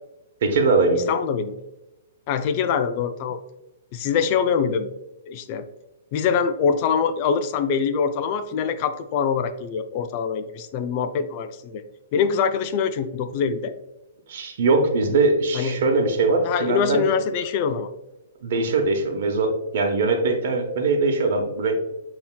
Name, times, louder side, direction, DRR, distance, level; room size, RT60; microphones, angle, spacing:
voice 1, 0.4-1.0 14.3-17.0 18.4-21.9, right 3 dB, 60° right, 4 dB, 0.9 m, -21 dB
voice 2, 1.0-1.6 2.3-3.4 3.9-4.9 5.3-5.7 6.1-11.8 12.1-13.7 15.5-15.8 16.4-17.9, left 6 dB, 40° left, 10 dB, 0.3 m, -24 dB
7.1 x 2.8 x 2.2 m, 0.95 s
hypercardioid pair, 140°, 0 cm